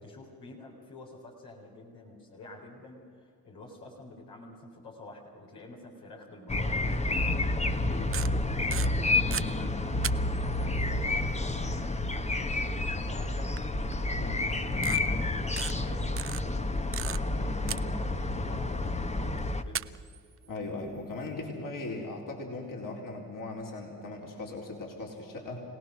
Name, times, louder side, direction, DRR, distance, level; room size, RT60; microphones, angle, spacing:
voice 1, 0.0-9.9 10.3-13.5 14.1-19.9, left 2 dB, 75° left, -2 dB, 4.2 m, -48 dB
sound 1, 6.5-19.6, left 2 dB, 15° left, 1.1 m, -29 dB
sound 2, 7.9-9.5 10.0-10.6 12.4-12.5 13.6-13.7 13.9-14.0 14.7-15.0 15.5-15.7 16.2-17.4 17.7-18.4 19.4-19.5 19.8-21.4, right 8 dB, 35° right, 0.6 m, -36 dB
voice 2, 9.3-9.7 14.2-14.4 17.4-17.9 20.5-25.6, left 2 dB, 55° left, 0 dB, 4.3 m, -39 dB
26.0 x 17.5 x 6.3 m, 2.3 s
hypercardioid pair, 50°, 39 cm